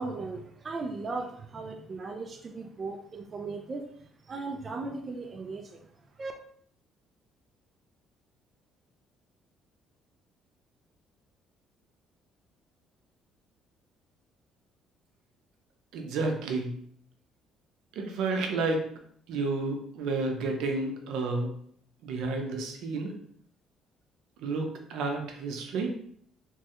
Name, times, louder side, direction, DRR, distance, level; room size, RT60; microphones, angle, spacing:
voice 1, 0.0-3.9 4.2-5.9 6.2-6.3, right 3 dB, 30° right, 3 dB, 0.3 m, -37 dB
voice 2, 15.9-16.7 18.0-18.8 19.3-21.5 22.0-23.1 24.4-25.9, right 3 dB, 80° right, 3 dB, 0.6 m, -31 dB
3.1 x 2.3 x 2.8 m, 0.63 s
cardioid pair, 135°, 0 cm